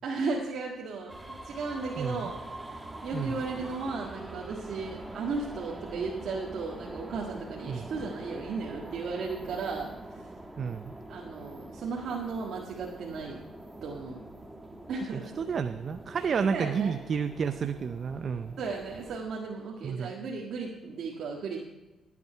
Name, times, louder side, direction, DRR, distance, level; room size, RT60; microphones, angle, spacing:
voice 1, 0.0-2.4 3.0-10.2 11.1-13.4 13.8-14.2 14.9-15.3 16.5-16.9 18.6-21.6, right 4 dB, 65° right, -1 dB, 1.6 m, -35 dB
sound 1, 1.1-19.2, right 1 dB, 10° right, 1.5 m, -44 dB
voice 2, 2.0-2.3 3.1-3.4 7.7-7.9 10.6-10.9 15.1-18.6 19.8-20.1, right 6 dB, 50° right, 9 dB, 0.5 m, -31 dB
15.0 x 8.4 x 5.6 m, 1.1 s
cardioid pair, 90°, 0 cm